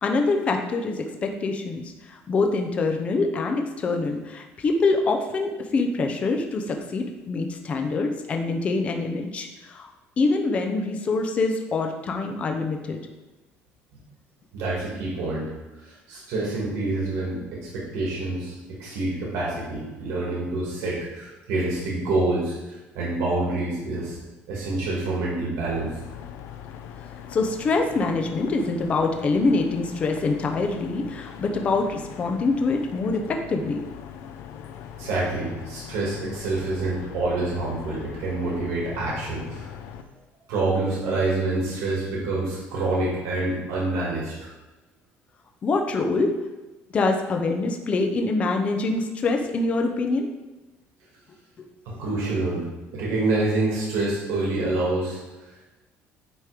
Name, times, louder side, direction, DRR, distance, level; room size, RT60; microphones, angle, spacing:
voice 1, 0.0-9.9 10.2-13.0 27.3-33.8 45.6-46.4 46.9-50.3, left 3 dB, 25° left, 4 dB, 0.6 m, -25 dB
voice 2, 14.5-15.5 15.8-24.2 24.5-25.9 35.0-39.7 40.5-44.5 51.9-52.7 52.9-55.5, right 2 dB, 80° right, -5 dB, 2.1 m, -27 dB
sound 1, 25.7-40.0, left 9 dB, 70° left, 0.5 m, -41 dB
9.1 x 3.1 x 5.0 m, 1.1 s
cardioid pair, 170°, 5 cm